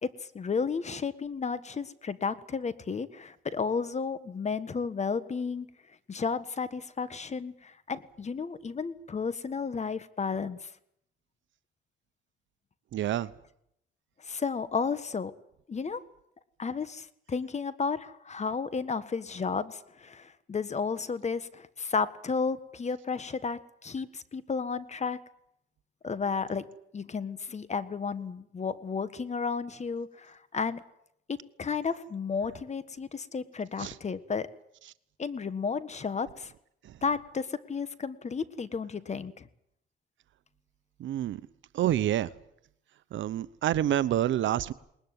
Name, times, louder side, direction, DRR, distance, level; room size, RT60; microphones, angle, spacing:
voice 1, 0.3-5.7 6.1-10.7 14.3-15.3 15.7-16.0 16.6-25.2 26.0-26.7 26.9-30.8 31.3-34.5 35.2-36.5 37.0-39.5, left 5 dB, 35° left, 15 dB, 1.5 m, -33 dB
voice 2, 12.9-13.3 33.8-33.9 36.8-36.9 41.0-41.4 41.7-42.3 43.1-44.7, right 12 dB, 70° right, 16 dB, 1.0 m, -28 dB
20.5 x 20.0 x 9.7 m, 0.75 s
cardioid pair, 90°, 20 cm